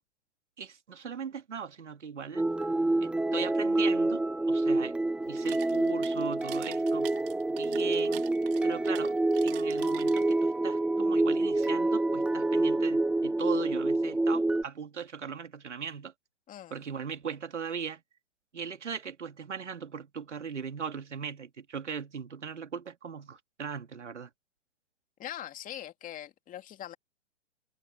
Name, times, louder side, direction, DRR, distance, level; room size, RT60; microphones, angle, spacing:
voice 1, 0.6-2.4 3.0-5.0 5.3-7.1 7.5-8.2 8.6-9.1 9.4-16.1 16.7-18.0 18.5-24.3, right 6 dB, 85° right, 2.5 m, -39 dB
sound 1, 2.3-14.6, right 2 dB, 5° right, 0.7 m, -27 dB
sound 2, 5.3-10.6, right 17 dB, 50° right, 2.4 m, -47 dB
voice 2, 16.5-16.9 25.2-27.0, left 11 dB, 25° left, 2.4 m, -42 dB
hypercardioid pair, 125°, 35 cm